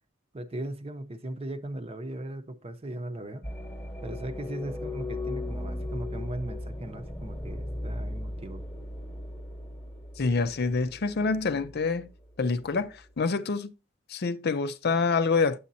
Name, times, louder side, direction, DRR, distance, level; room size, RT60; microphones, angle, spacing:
voice 1, 0.3-3.5 4.0-8.6, right 1 dB, 30° right, 0.7 m, -38 dB
sound 1, 3.4-13.2, left 1 dB, 10° left, 1.1 m, -38 dB
voice 2, 10.2-12.1 12.4-13.7 14.1-15.6, left 4 dB, 55° left, 0.5 m, -26 dB
8.5 x 8.3 x 2.7 m
head